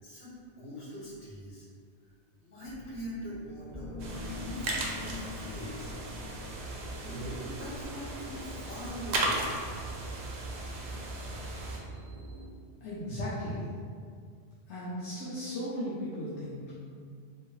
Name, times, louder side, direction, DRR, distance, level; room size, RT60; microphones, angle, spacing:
voice 1, 0.0-1.7 2.0-2.1 2.4-4.0 4.2-5.9 6.9-9.4, equal, 65° left, -8 dB, 1.3 m, -42 dB
sound 1, 2.6-8.6, left 3 dB, 35° left, 0.5 m, -44 dB
sound 2, 4.0-11.8, right 2 dB, 80° right, 0.8 m, -37 dB
sound 3, 6.6-12.5, right 2 dB, 50° right, 0.8 m, -44 dB
voice 2, 12.8-13.7 14.7-16.7, equal, 85° left, -9 dB, 1.0 m, -36 dB
2.7 x 2.7 x 3.0 m, 2.1 s
omnidirectional pair, 1.1 m